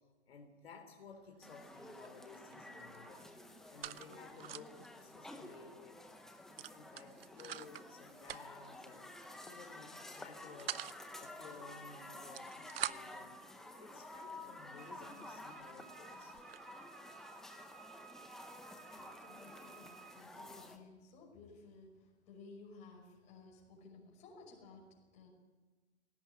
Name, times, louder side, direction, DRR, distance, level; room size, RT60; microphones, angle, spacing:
voice 1, 0.3-3.3 3.7-6.0 6.4-10.8 11.2-16.4 18.3-18.4, left 4 dB, 60° left, 4 dB, 3.4 m, -56 dB
sound 1, 1.1-1.4 1.7-2.5 2.8-4.9 5.3-5.4 5.6-5.8 6.6-7.9 8.2-8.7 9.5-9.8 10.2-11.0 12.1-13.2 14.0-14.1 14.7-14.8 15.3-15.4 15.6-16.7, right 11 dB, 55° right, 0.7 m, -45 dB
sound 2, 1.4-20.8, left 1 dB, ahead, 0.7 m, -52 dB
Wind instrument woodwind instrument, 14.8-20.3, right 8 dB, 85° right, 1.1 m, -58 dB
voice 2, 18.8-25.3, left 3 dB, 20° left, 1 dB, 5.8 m, -57 dB
19.0 x 17.5 x 9.9 m, 1.3 s
hypercardioid pair, 150°, 34 cm